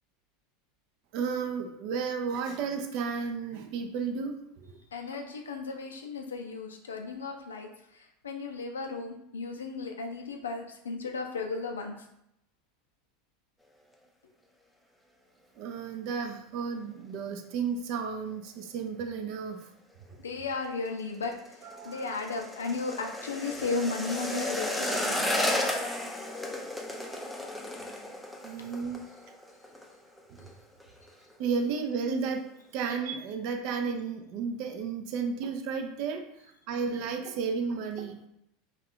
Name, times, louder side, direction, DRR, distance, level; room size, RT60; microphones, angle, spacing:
voice 1, 1.1-4.7 15.6-19.6 21.6-22.2 28.4-29.0 30.4-30.5 31.4-32.4 32.7-36.2 36.7-38.2, right 5 dB, 60° right, 5 dB, 0.4 m, -33 dB
voice 2, 4.9-12.0 20.2-25.6, left 4 dB, 90° left, 3 dB, 0.4 m, -35 dB
sound 1, 20.9-29.9 30.2-30.5 30.8-31.3 31.7-31.8, left 1 dB, 5° left, 0.4 m, -33 dB
2.4 x 2.3 x 3.5 m, 0.79 s
hypercardioid pair, 90°, 0 cm